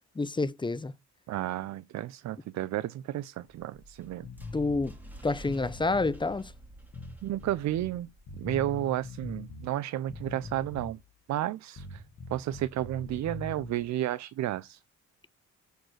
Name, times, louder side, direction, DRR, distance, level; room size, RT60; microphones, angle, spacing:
voice 1, 0.2-0.9 4.5-4.9 5.2-6.5, left 3 dB, 15° left, 0.6 m, -28 dB
voice 2, 1.3-4.3 7.2-8.1 8.4-11.0 11.3-12.0 12.3-14.8, right 13 dB, 65° right, 0.5 m, -32 dB
sound 1, 3.5-8.6, right 1 dB, 5° right, 2.3 m, -49 dB
sound 2, 4.2-4.9 5.4-6.1 6.9-7.9 8.3-9.7 10.1-11.0 11.8-13.8, left 3 dB, 65° left, 1.7 m, -43 dB
6.6 x 4.7 x 6.2 m
cardioid pair, 90°, 30 cm